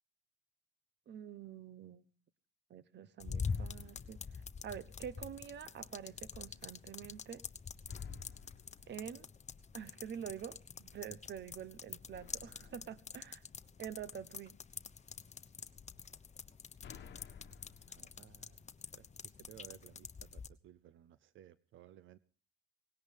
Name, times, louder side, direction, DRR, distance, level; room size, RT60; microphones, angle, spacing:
voice 1, 1.1-2.0 2.7-7.4 8.9-9.3 9.7-13.4 13.8-14.6, right 8 dB, 60° right, 1.1 m, -47 dB
sound 1, 3.2-20.5, left 5 dB, 35° left, 1.1 m, -46 dB
sound 2, 3.4-5.3 7.9-10.3 12.1-14.4 16.3-19.4, left 7 dB, 60° left, 1.3 m, -59 dB
voice 2, 17.9-18.7 18.9-19.1 19.5-20.1 20.3-22.2, right 11 dB, 80° right, 0.7 m, -58 dB
19.0 x 17.0 x 3.5 m
cardioid pair, 90°, 20 cm